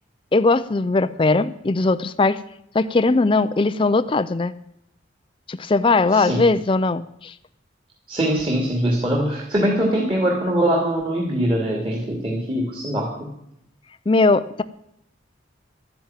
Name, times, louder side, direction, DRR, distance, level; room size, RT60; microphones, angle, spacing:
voice 1, 0.3-2.4 2.7-4.6 5.5-7.3 14.1-14.6, left 3 dB, 25° left, 12 dB, 0.4 m, -19 dB
voice 2, 6.1-6.5 8.1-13.3, right 1 dB, 30° right, -2 dB, 2.6 m, -22 dB
12.5 x 10.5 x 8.9 m, 0.77 s
head